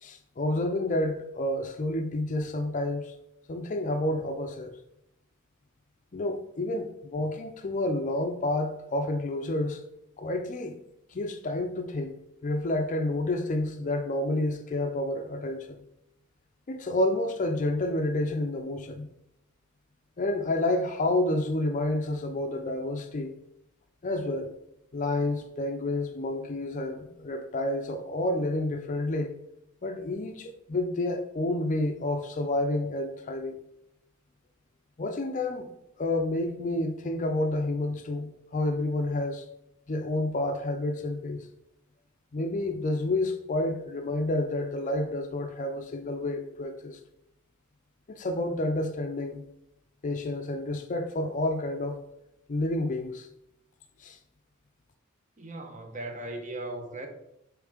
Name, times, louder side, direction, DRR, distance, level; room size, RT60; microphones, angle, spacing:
voice 1, 0.0-3.1 3.5-4.7 6.1-9.8 10.2-10.7 11.1-12.1 12.4-15.8 16.7-19.1 20.2-23.3 24.0-24.5 24.9-29.3 29.8-33.6 35.0-35.7 36.0-39.4 39.9-41.5 42.3-47.0 48.1-49.4 50.0-52.0 52.5-53.3 54.0-54.2, left 1 dB, 35° left, 0.5 m, -29 dB
voice 2, 55.4-57.1, right 2 dB, 35° right, 0.9 m, -38 dB
7.1 x 3.2 x 4.9 m
head